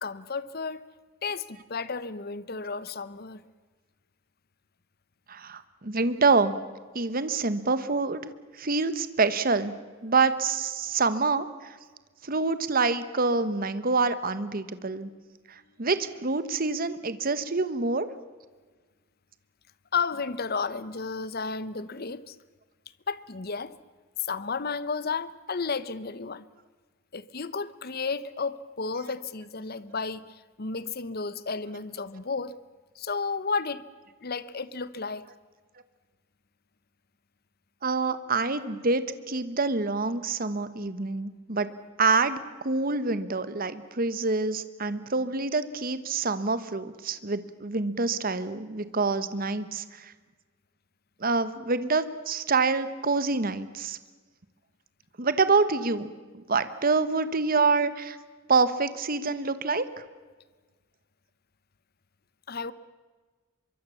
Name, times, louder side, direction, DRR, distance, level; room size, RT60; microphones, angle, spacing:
voice 1, 0.0-0.8 1.2-3.4 19.9-22.4 23.1-23.7 24.2-26.4 27.1-32.5 33.0-33.8 34.2-35.3 62.5-62.7, left 4 dB, 50° left, 1.0 m, -32 dB
voice 2, 5.3-6.5 6.9-8.3 8.6-9.7 10.0-11.8 12.2-15.1 15.5-18.1 37.8-41.7 42.0-42.4 42.6-50.1 51.2-54.0 55.2-56.1 56.3-58.2 58.5-59.8, right 4 dB, 45° right, 1.2 m, -26 dB
25.0 x 23.0 x 7.1 m
head